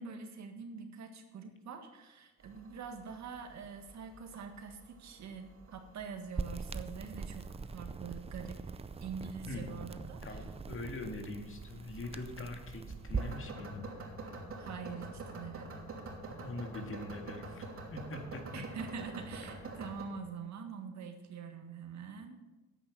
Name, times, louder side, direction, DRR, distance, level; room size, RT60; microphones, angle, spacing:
voice 1, 0.0-8.6 9.0-10.2 14.6-15.7 18.5-22.4, right 6 dB, 65° right, 5 dB, 1.7 m, -45 dB
sound 1, 2.4-20.0, right 2 dB, 45° right, 2.9 m, -48 dB
sound 2, 6.4-13.4, right 4 dB, 20° right, 0.5 m, -42 dB
voice 2, 9.5-13.9 16.3-18.6 19.7-19.8, left 2 dB, 45° left, 4 dB, 2.0 m, -43 dB
10.0 x 8.5 x 6.3 m, 1.1 s
cardioid pair, 90°, 30 cm